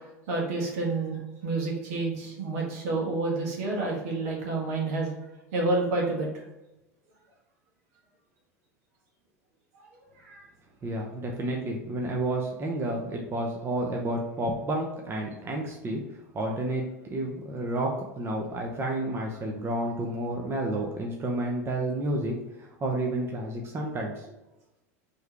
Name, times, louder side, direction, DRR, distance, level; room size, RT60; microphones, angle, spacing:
voice 1, 0.0-5.1 5.5-6.3 9.7-9.8 10.2-10.5, right 3 dB, 70° right, -2 dB, 1.6 m, -29 dB
voice 2, 10.8-16.8 17.1-24.3, right 1 dB, 30° right, 0 dB, 0.8 m, -30 dB
4.5 x 3.3 x 3.4 m, 0.97 s
hypercardioid pair, 90°, 9 cm